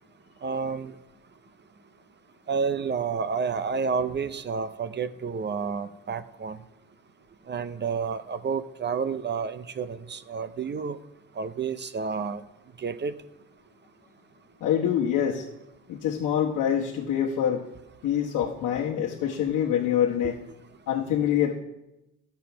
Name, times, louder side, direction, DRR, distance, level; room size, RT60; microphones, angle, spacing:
voice 1, 0.4-0.9 2.5-6.6 7.5-11.0 11.4-12.4 12.8-13.1, right 5 dB, 35° right, 0.6 m, -30 dB
voice 2, 14.6-15.5 15.9-17.6 18.0-20.3 20.9-21.6, left 9 dB, 85° left, 1.1 m, -25 dB
12.5 x 6.9 x 5.7 m
cardioid pair, 90°, 30 cm